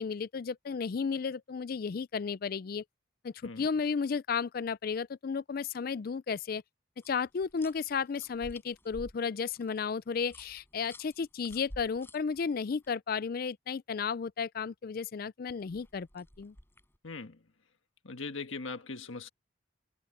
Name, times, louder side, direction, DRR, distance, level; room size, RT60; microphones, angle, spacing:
voice 1, 0.0-2.8 3.2-6.6 7.1-16.5, left 5 dB, 45° left, 0.4 m, -33 dB
sound 1, 7.0-12.9 15.5-17.0, left 1 dB, 10° left, 4.8 m, -52 dB
voice 2, 17.0-17.4 18.0-19.3, left 4 dB, 80° left, 1.5 m, -40 dB
head